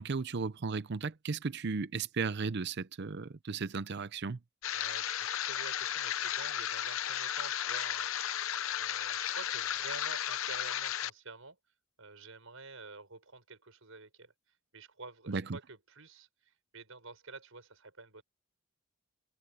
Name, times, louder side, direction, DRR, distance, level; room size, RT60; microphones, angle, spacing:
voice 1, 0.0-4.4 15.3-15.6, right 4 dB, 55° right, 0.6 m, -35 dB
sound 1, 4.6-11.1, left 10 dB, 70° left, 0.7 m, -34 dB
voice 2, 4.7-8.1 8.7-11.6 12.0-14.3 14.7-18.2, right 3 dB, 70° right, 6.1 m, -49 dB
head